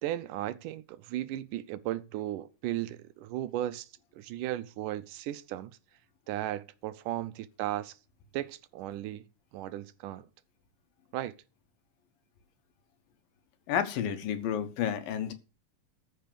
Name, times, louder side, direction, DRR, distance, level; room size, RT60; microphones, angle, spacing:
voice 1, 0.0-5.7 6.3-8.0 8.3-9.2 9.5-10.3 11.1-11.3, right 13 dB, 75° right, 2.2 m, -36 dB
voice 2, 13.7-15.3, left 9 dB, 85° left, 3.1 m, -31 dB
14.0 x 5.8 x 6.8 m
omnidirectional pair, 3.9 m